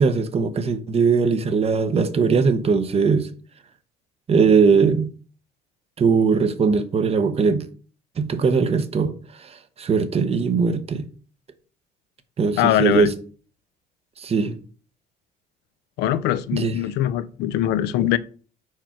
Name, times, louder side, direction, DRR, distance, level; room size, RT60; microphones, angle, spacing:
voice 1, 0.0-3.3 4.3-5.1 6.0-7.6 8.2-9.1 9.4-11.0 12.4-13.1 14.2-14.6 16.5-16.8, right 5 dB, 35° right, 0.9 m, -20 dB
voice 2, 12.6-13.1 16.0-18.2, left 12 dB, 90° left, 0.5 m, -21 dB
4.8 x 4.5 x 5.8 m
cardioid pair, 110°, 17 cm